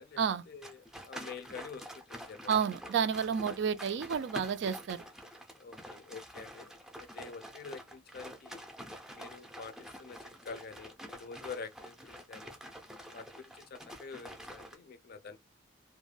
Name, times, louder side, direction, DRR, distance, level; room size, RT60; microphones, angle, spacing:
voice 1, 0.5-2.5 5.6-8.6 9.1-12.6 13.1-15.4, left 5 dB, 55° left, 0.4 m, -47 dB
sound 1, 0.6-14.8, equal, 5° right, 0.5 m, -47 dB
voice 2, 2.5-5.0, right 7 dB, 65° right, 0.3 m, -30 dB
2.3 x 2.1 x 3.2 m
head